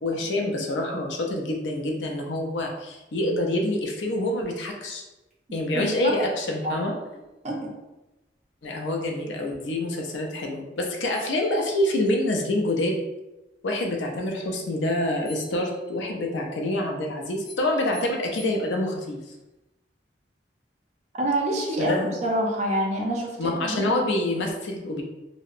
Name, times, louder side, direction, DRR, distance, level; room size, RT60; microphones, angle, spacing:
voice 1, 0.0-5.0 5.5-6.9 8.6-13.0 13.6-19.2 21.8-22.2 23.4-25.0, left 1 dB, 85° left, 1 dB, 0.5 m, -26 dB
sound 1, 5.3-5.4 5.8-6.9 10.8-10.9 11.1-12.2 15.3-16.2 17.4-19.2, left 3 dB, ahead, 0.7 m, -50 dB
voice 2, 5.7-6.2 6.6-6.8 7.4-7.7 21.2-21.9 22.2-24.1, right 1 dB, 40° right, 0 dB, 0.5 m, -27 dB
2.7 x 2.0 x 2.4 m, 1.0 s
head